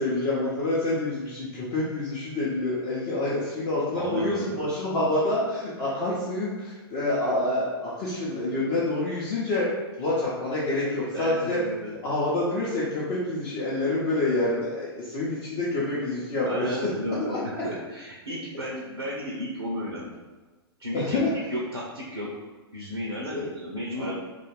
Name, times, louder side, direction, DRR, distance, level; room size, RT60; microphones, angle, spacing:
voice 1, 0.0-9.7 10.0-11.6 12.0-16.9 17.2-17.4 20.9-21.3 23.3-23.5 24.0-24.1, left 2 dB, 35° left, -8 dB, 0.6 m, -27 dB
voice 2, 3.9-4.7 11.1-12.0 16.5-20.2 20.8-21.2 21.5-22.3 22.7-24.1, equal, 80° right, -3 dB, 0.5 m, -33 dB
2.4 x 2.4 x 3.1 m, 1.2 s
figure-of-eight pair, 105°, 14 cm